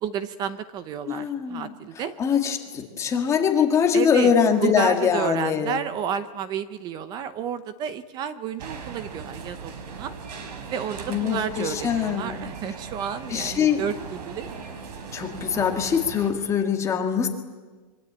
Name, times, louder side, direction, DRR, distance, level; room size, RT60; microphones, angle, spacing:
voice 1, 0.0-2.1 3.9-4.3 4.6-10.1 10.7-14.5, right 8 dB, 20° right, 13 dB, 0.8 m, -31 dB
voice 2, 1.1-1.7 2.2-5.8 11.1-12.4 13.3-13.9 15.1-17.3, left 7 dB, 15° left, 3 dB, 1.8 m, -23 dB
sound 1, 8.6-16.3, right 5 dB, 75° right, 3.9 m, -38 dB
25.0 x 23.5 x 8.8 m, 1.4 s
supercardioid pair, 175°, 21 cm